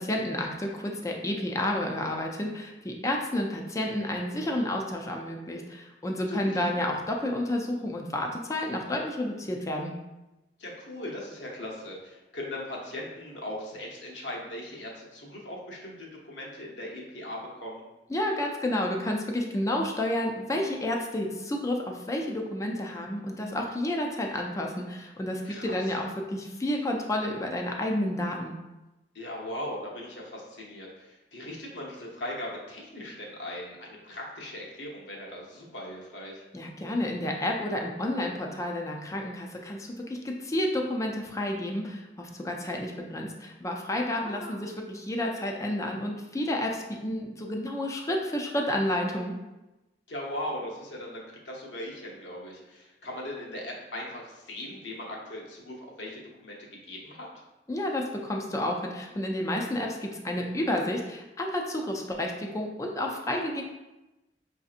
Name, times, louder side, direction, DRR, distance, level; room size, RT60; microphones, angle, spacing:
voice 1, 0.0-9.9 18.1-28.5 36.5-49.3 57.7-63.6, left 1 dB, 20° left, 1 dB, 0.4 m, -30 dB
voice 2, 6.3-6.7 10.6-17.8 25.4-26.0 29.1-36.4 44.1-44.6 50.1-57.3, left 1 dB, 80° left, -2 dB, 0.9 m, -39 dB
5.0 x 2.6 x 2.4 m, 1.0 s
head